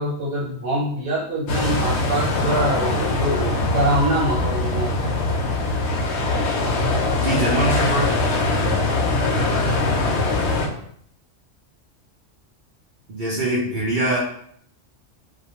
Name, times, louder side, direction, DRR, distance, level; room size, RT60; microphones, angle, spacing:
voice 1, 0.0-5.1, right 1 dB, 80° right, -7 dB, 1.2 m, -24 dB
sound 1, 1.5-10.7, left 2 dB, 70° left, 0.8 m, -22 dB
voice 2, 7.1-8.2 13.1-14.2, right 1 dB, 50° right, -7 dB, 0.7 m, -23 dB
2.3 x 2.2 x 2.9 m, 0.64 s
omnidirectional pair, 1.2 m